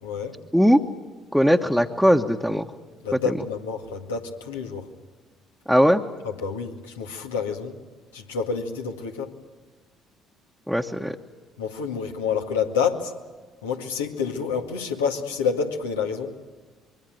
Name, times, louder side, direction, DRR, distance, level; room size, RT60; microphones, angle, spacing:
voice 1, 0.0-0.4 3.0-4.9 6.2-7.8 8.1-9.3 11.6-13.1 13.6-16.3, left 6 dB, 80° left, 3 dB, 2.1 m, -28 dB
voice 2, 1.3-2.7 3.1-3.3 5.7-6.0 10.7-11.2, equal, ahead, 1 dB, 1.4 m, -19 dB
25.5 x 23.0 x 9.3 m, 1.4 s
hypercardioid pair, 55°, 0 cm